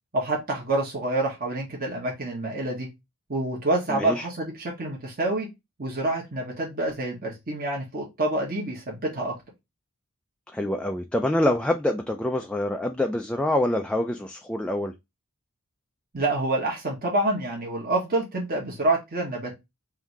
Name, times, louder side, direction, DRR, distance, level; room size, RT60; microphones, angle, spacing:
voice 1, 0.1-2.9 3.3-5.5 5.8-9.3 16.1-19.5, right 2 dB, 45° right, 1.3 m, -27 dB
voice 2, 3.9-4.3 10.5-14.9, left 1 dB, 5° left, 0.3 m, -26 dB
3.6 x 2.7 x 4.6 m
head